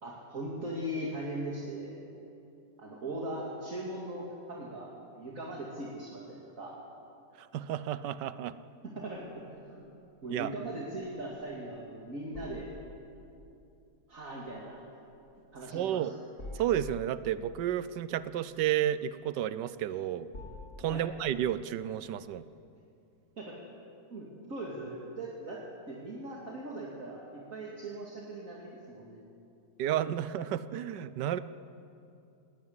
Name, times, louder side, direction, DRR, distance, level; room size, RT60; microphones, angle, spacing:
voice 1, 0.0-2.0 2.8-6.8 8.8-9.9 10.2-12.7 14.1-14.8 15.5-16.1 20.8-21.1 23.4-23.6 24.1-25.6 25.9-29.2, right 1 dB, 50° right, -4 dB, 2.8 m, -40 dB
voice 2, 7.4-8.5 10.3-10.5 15.7-16.2 16.5-20.3 20.8-22.4 29.8-31.4, right 11 dB, 85° right, 15 dB, 1.4 m, -31 dB
sound 1, 10.1-21.8, left 2 dB, 45° left, 3.5 m, -51 dB
18.5 x 18.0 x 9.7 m, 2.6 s
omnidirectional pair, 1.8 m